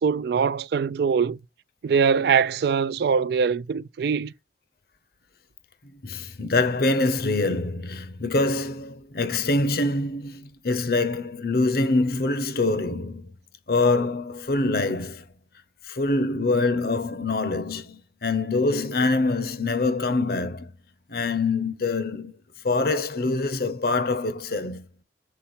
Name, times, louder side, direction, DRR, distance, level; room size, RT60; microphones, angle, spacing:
voice 1, 0.0-1.4 1.8-4.3, right 6 dB, 60° right, 0.3 m, -22 dB
voice 2, 5.8-13.3 13.7-15.2 15.8-20.7 21.1-22.3 22.6-24.9, left 3 dB, 60° left, 0.8 m, -25 dB
6.9 x 4.3 x 4.3 m
head